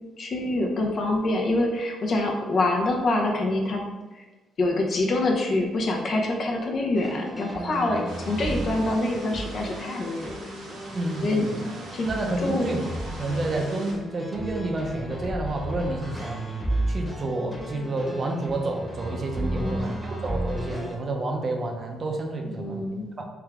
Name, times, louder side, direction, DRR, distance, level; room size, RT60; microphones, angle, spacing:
voice 1, 0.2-3.8 4.1-4.2 4.6-10.3 11.2-11.5 11.9-12.1 12.4-12.7 19.6-20.0 22.5-23.1, left 2 dB, 50° left, 1 dB, 0.8 m, -25 dB
sound 1, 6.9-21.0, right 1 dB, 5° right, 1.1 m, -34 dB
sound 2, 8.1-13.9, right 1 dB, 90° right, 1.5 m, -43 dB
voice 2, 10.9-11.6 12.0-12.8 13.2-16.5 16.9-22.8 23.2-23.3, right 2 dB, 45° right, 2 dB, 0.7 m, -29 dB
3.5 x 3.4 x 3.5 m, 1.2 s
cardioid pair, 90°, 0 cm